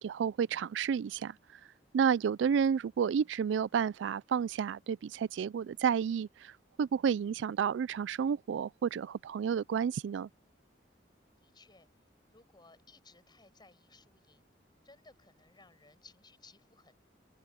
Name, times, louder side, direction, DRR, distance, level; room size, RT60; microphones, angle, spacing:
voice 1, 0.0-1.4 1.9-10.3, right 7 dB, 85° right, 0.3 m, -31 dB
voice 2, 11.4-11.9 12.3-14.5 14.8-16.9, left 3 dB, 25° left, 7.0 m, -60 dB
head